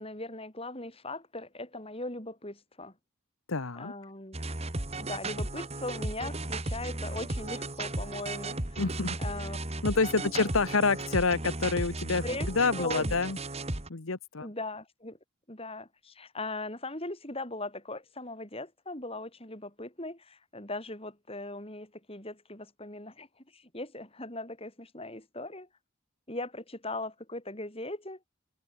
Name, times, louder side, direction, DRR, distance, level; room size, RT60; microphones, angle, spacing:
voice 1, 0.0-2.9 3.8-4.4 5.0-8.8 9.2-9.6 10.2-10.5 12.2-12.5 12.8-13.2 14.4-15.2 15.5-23.3 23.5-25.7 26.3-28.2, left 2 dB, 25° left, 6.9 m, -39 dB
voice 2, 3.5-3.9 8.8-9.2 9.8-12.2 12.5-13.4 13.9-14.5, left 4 dB, 80° left, 1.2 m, -27 dB
sound 1, 4.3-13.9, right 2 dB, 30° right, 2.4 m, -35 dB
head